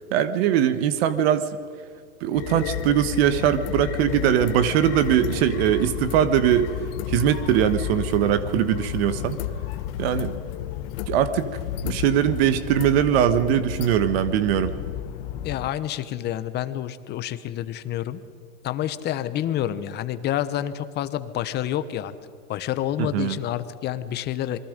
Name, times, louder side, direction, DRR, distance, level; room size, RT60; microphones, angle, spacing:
voice 1, 0.1-1.5 2.2-6.7 7.1-9.4 10.0-10.3 11.1-11.5 11.8-14.7 23.0-23.4, right 10 dB, 50° right, 12 dB, 1.4 m, -21 dB
sound 1, 2.3-15.7, left 11 dB, 45° left, 1.2 m, -32 dB
voice 2, 15.4-18.2 18.6-22.1 22.5-24.6, left 12 dB, 25° left, 13 dB, 1.1 m, -28 dB
28.5 x 22.5 x 5.2 m, 2.2 s
hypercardioid pair, 135°, 40 cm